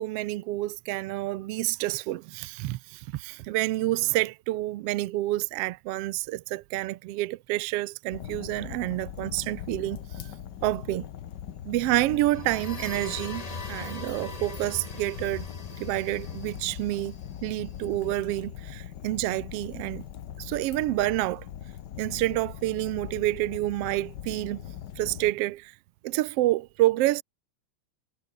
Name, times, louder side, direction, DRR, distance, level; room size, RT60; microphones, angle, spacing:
voice 1, 0.0-10.3 10.6-11.0 11.7-15.5 15.8-17.1 17.4-20.0 20.4-21.5 22.0-24.6 25.0-25.7 26.0-27.2, right 17 dB, 75° right, 1.4 m, -28 dB
Fire, 8.1-25.3, left 10 dB, 70° left, 1.0 m, -41 dB
sound 1, 12.1-17.8, left 3 dB, 25° left, 0.8 m, -41 dB
omnidirectional pair, 3.3 m